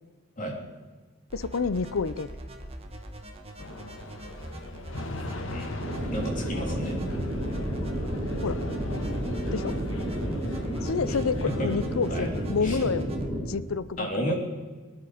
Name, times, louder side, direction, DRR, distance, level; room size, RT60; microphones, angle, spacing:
voice 1, 1.3-2.3 8.4-8.6 9.5-9.8 10.8-13.1 13.5-14.3, left 5 dB, 85° left, 16 dB, 0.6 m, -29 dB
sound 1, 1.3-13.3, right 1 dB, 30° right, 1.5 m, -42 dB
sound 2, 3.6-12.7, left 2 dB, 70° left, 1.4 m, -41 dB
sound 3, 5.8-13.4, equal, 15° right, 4.5 m, -31 dB
voice 2, 6.1-7.0 11.6-11.7 12.1-12.3 12.6-12.8 14.0-14.3, right 1 dB, 40° left, -1 dB, 3.4 m, -32 dB
22.0 x 10.5 x 5.1 m, 1.4 s
head